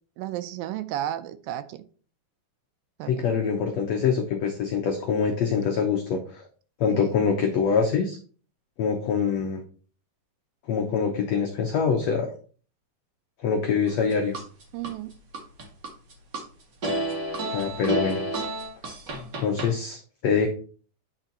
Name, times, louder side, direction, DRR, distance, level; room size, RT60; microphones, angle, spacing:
voice 1, 0.2-1.8 3.0-3.1 6.9-7.2 14.7-15.1, right 12 dB, 80° right, 12 dB, 2.2 m, -33 dB
voice 2, 3.0-6.4 6.8-8.2 8.8-9.6 10.7-12.3 13.4-14.4 17.5-18.2 19.4-20.5, left 6 dB, 80° left, 3 dB, 1.5 m, -24 dB
sound 1, 13.9-14.9 15.3-16.4 16.8-19.7, right 1 dB, 60° right, 1.1 m, -30 dB
9.0 x 4.4 x 3.9 m, 0.40 s
omnidirectional pair, 4.2 m